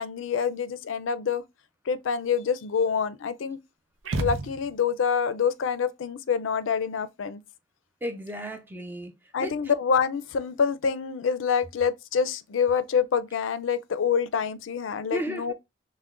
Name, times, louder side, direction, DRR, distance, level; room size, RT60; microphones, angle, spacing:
voice 1, 0.0-1.4 1.9-3.6 4.2-7.4 9.3-15.5, left 6 dB, 85° left, 0.4 m, -26 dB
sound 1, 4.0-5.1, right 2 dB, 90° right, 0.6 m, -31 dB
voice 2, 8.0-9.7 15.1-15.5, equal, 10° right, 0.4 m, -34 dB
5.8 x 2.1 x 2.4 m
head